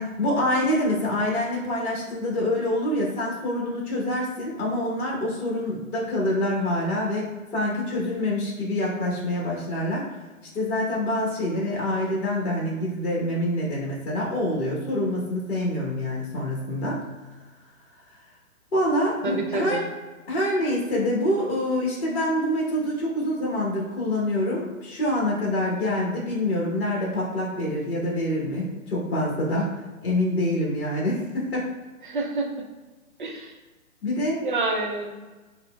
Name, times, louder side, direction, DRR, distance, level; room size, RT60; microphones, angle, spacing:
voice 1, 0.0-7.3 7.5-10.0 10.5-17.0 18.7-19.8 20.3-29.7 30.0-31.7 34.0-34.5, left 1 dB, 45° left, -4 dB, 1.1 m, -26 dB
voice 2, 19.2-19.8 32.0-32.5 33.2-33.5 34.4-35.1, right 3 dB, 35° right, 1 dB, 0.6 m, -27 dB
5.4 x 2.1 x 2.3 m, 1.2 s
figure-of-eight pair, 145°, 43 cm